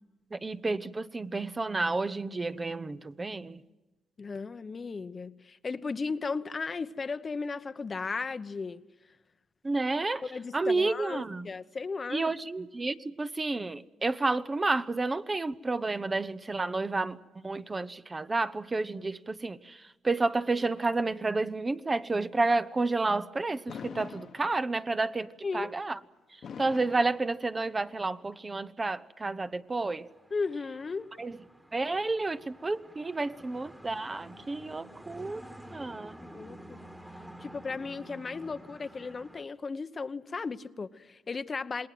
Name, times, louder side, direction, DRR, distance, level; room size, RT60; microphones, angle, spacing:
voice 1, 0.3-3.6 9.6-10.2 10.5-11.5 12.1-25.3 25.5-26.0 26.6-30.1 31.2-31.4 31.7-35.4 35.7-36.2, right 3 dB, 25° right, 0.8 m, -30 dB
voice 2, 4.2-8.8 10.2-12.3 25.4-25.7 30.3-31.1 36.2-36.9 37.4-41.9, left 4 dB, 35° left, 0.9 m, -35 dB
Fireworks, 23.7-25.0 26.4-28.0, left 7 dB, 60° left, 1.3 m, -44 dB
sound 1, 29.8-39.4, right 1 dB, 5° right, 1.7 m, -50 dB
28.0 x 20.0 x 7.7 m
cardioid pair, 90°, 0 cm